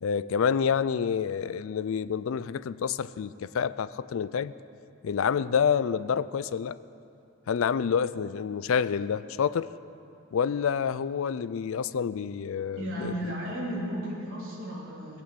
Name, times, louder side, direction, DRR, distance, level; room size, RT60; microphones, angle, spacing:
voice 1, 0.0-4.5 5.0-6.8 7.5-9.7 10.3-13.4, left 7 dB, 70° left, 17 dB, 0.4 m, -28 dB
voice 2, 12.8-15.2, equal, 65° right, -6 dB, 3.4 m, -34 dB
17.0 x 8.8 x 7.7 m, 2.7 s
head